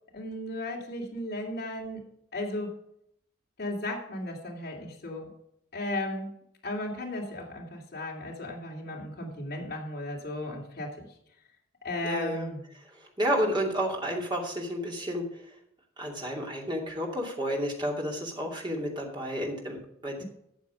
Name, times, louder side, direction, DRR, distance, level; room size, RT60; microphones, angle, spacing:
voice 1, 0.1-2.0 2.3-2.7 3.6-5.3 5.7-6.3 6.6-10.9 11.8-12.6, left 1 dB, 50° left, -2 dB, 2.7 m, -35 dB
voice 2, 12.0-12.5 13.2-15.2 16.0-20.2, equal, 20° right, -1 dB, 2.6 m, -31 dB
12.5 x 7.2 x 5.1 m, 0.75 s
head